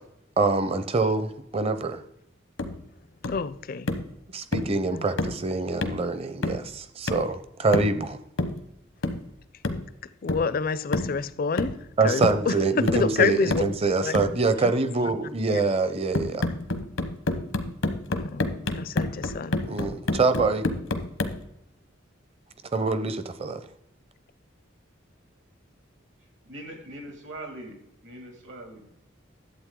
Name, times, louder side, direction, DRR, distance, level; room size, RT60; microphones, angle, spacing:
voice 1, 0.4-2.0 4.3-8.2 12.0-16.5 19.6-20.7 22.7-23.7, right 3 dB, 30° right, 0.6 m, -25 dB
sound 1, 2.6-2.8 3.2-3.5 3.9-4.1 4.5-4.8 5.2-5.4 5.8-6.1 6.4-6.7 7.1-7.3 7.7-8.0 8.4-8.6 9.0-9.3 9.6-9.9 10.3-10.5 10.9-11.2 11.6-11.9 12.2-12.5 12.9-13.1 13.5-13.8 14.1-14.4 16.1-21.4, left 2 dB, 90° left, 1.0 m, -29 dB
voice 2, 3.3-3.9 4.9-5.1 10.2-11.8 12.0-13.6 14.0-14.1 14.6-14.7 15.5-15.6 18.2-18.5 18.8-19.6, left 5 dB, 50° left, 0.4 m, -28 dB
voice 3, 26.5-27.7 28.0-28.8, right 1 dB, 75° right, 2.5 m, -41 dB
11.5 x 8.0 x 3.7 m
head